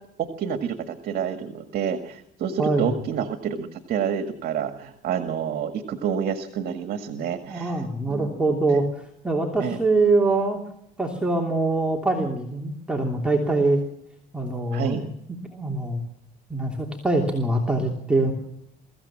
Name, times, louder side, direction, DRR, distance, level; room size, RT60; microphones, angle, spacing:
voice 1, 0.2-8.4 9.6-9.8 14.7-15.1, right 8 dB, 65° right, 8 dB, 1.9 m, -28 dB
voice 2, 2.6-3.0 7.5-10.6 11.0-13.8 14.3-15.1 15.4-16.0 16.5-18.3, right 2 dB, 5° right, 0 dB, 3.1 m, -23 dB
23.5 x 15.5 x 7.4 m, 0.76 s
cardioid pair, 110°, 17 cm